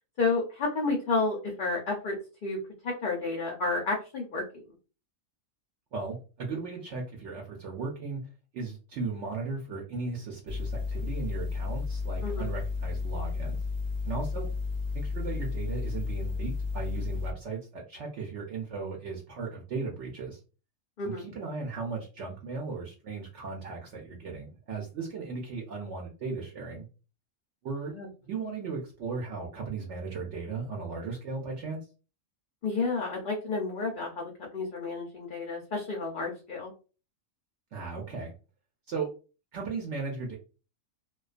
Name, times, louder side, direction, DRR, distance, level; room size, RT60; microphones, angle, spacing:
voice 1, 0.2-2.6 2.8-4.6 12.2-12.5 21.0-21.3 27.9-28.1 32.6-36.7, left 3 dB, 60° left, -1 dB, 0.5 m, -31 dB
voice 2, 5.9-8.2 8.5-13.6 14.0-14.5 14.9-20.4 21.0-26.9 27.6-27.9 28.3-31.9 37.7-38.3 38.9-39.1 39.5-40.3, right 4 dB, 65° right, -1 dB, 0.8 m, -36 dB
sound 1, 10.5-17.3, left 4 dB, 85° right, 0.3 m, -32 dB
2.3 x 2.3 x 2.3 m, 0.34 s
omnidirectional pair, 1.4 m